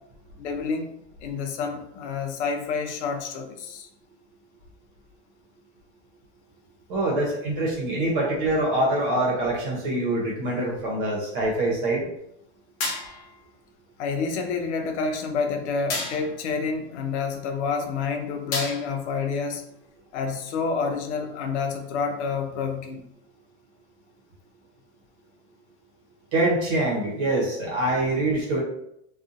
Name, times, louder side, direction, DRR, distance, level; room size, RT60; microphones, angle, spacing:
voice 1, 0.4-0.9 1.2-3.9 14.0-19.6 20.1-23.0, left 5 dB, 85° left, 4 dB, 0.6 m, -28 dB
voice 2, 6.9-12.1 26.3-28.6, right 1 dB, 55° right, -3 dB, 0.9 m, -24 dB
sound 1, 12.8-13.4 15.9-16.4 18.5-19.1, left 3 dB, 60° left, 0.9 m, -31 dB
2.6 x 2.4 x 2.5 m, 0.77 s
supercardioid pair, 140°, 33 cm